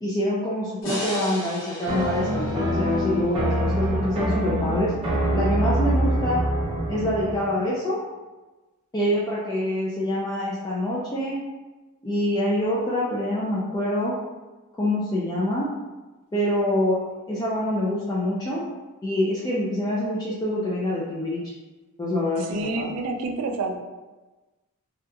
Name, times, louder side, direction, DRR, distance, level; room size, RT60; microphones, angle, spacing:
voice 1, 0.0-4.9 5.3-6.4 6.9-8.0 8.9-11.4 12.0-14.1 14.8-15.7 16.3-17.0 17.3-18.7 19.0-21.4 22.0-22.9, left 1 dB, 20° left, -7 dB, 0.3 m, -25 dB
sound 1, 0.8-4.0, equal, 60° left, 0.8 m, -35 dB
sound 2, 1.9-7.4, equal, 25° right, 0.7 m, -25 dB
voice 2, 22.5-23.8, right 3 dB, 75° right, 4 dB, 0.4 m, -28 dB
2.9 x 2.3 x 2.2 m, 1.2 s
head